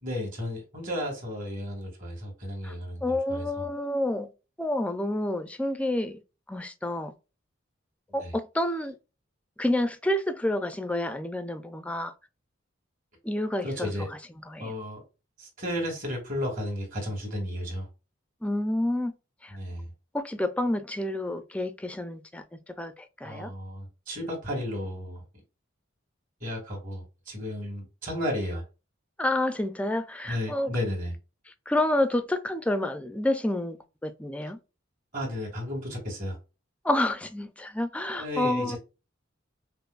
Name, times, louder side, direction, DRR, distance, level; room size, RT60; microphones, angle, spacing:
voice 1, 0.0-3.6 8.2-8.3 13.6-14.1 14.6-15.0 15.4-17.9 19.5-19.9 23.2-25.2 26.4-28.6 30.3-31.2 35.1-36.4 38.2-38.8, left 1 dB, 40° right, 2.0 m, -33 dB
voice 2, 3.0-4.3 4.6-6.2 6.5-7.1 8.1-9.0 9.6-12.1 13.2-13.9 14.5-14.7 18.4-19.1 19.4-19.5 20.1-22.4 22.8-23.5 29.2-30.7 31.7-34.6 36.8-38.8, left 1 dB, 5° left, 0.4 m, -29 dB
5.4 x 2.0 x 2.4 m
head